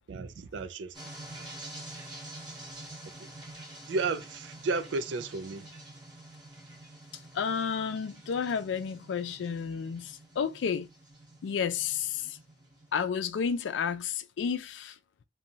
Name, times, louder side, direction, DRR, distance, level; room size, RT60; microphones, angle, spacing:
voice 1, 0.1-0.9 1.4-1.5 3.2-3.3 3.9-5.7, right 3 dB, 75° right, 0.4 m, -33 dB
sound 1, 0.9-13.1, right 1 dB, 25° right, 1.3 m, -47 dB
voice 2, 7.1-10.9 11.4-12.4 12.9-15.0, left 6 dB, 75° left, 0.3 m, -31 dB
2.9 x 2.3 x 2.6 m
head